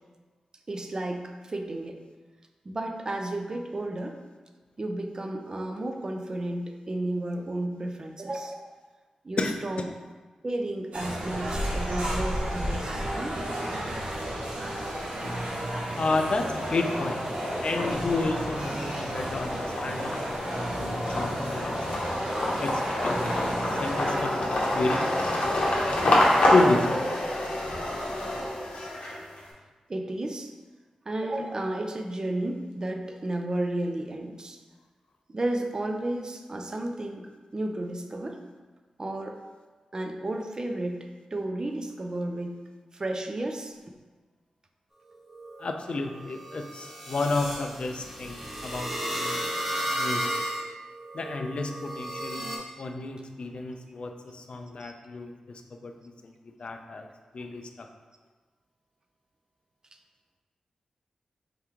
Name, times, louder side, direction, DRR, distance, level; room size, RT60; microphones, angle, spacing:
voice 1, 0.7-2.0 2.6-4.2 4.8-8.8 9.2-9.9 10.4-13.5 29.9-30.5 31.1-34.6 35.3-38.4 39.0-39.4 39.9-42.6 42.9-43.8 54.8-54.9, right 1 dB, 35° right, 4 dB, 0.4 m, -32 dB
voice 2, 9.4-9.9 16.0-17.2 17.6-22.0 22.6-23.5 23.8-25.1 26.5-27.0 45.6-50.3 51.1-55.3 55.7-55.9 56.2-56.3 56.6-57.1 57.3-57.9, left 3 dB, 55° left, 4 dB, 0.4 m, -31 dB
sound 1, 10.9-24.2, right 1 dB, 75° right, 0.8 m, -32 dB
sound 2, 14.9-15.5 15.9-29.4, left 1 dB, 75° left, 0.8 m, -28 dB
sound 3, 45.1-52.6, right 1 dB, 5° right, 0.9 m, -34 dB
3.6 x 2.9 x 3.4 m, 1.3 s
cardioid pair, 70°, 2 cm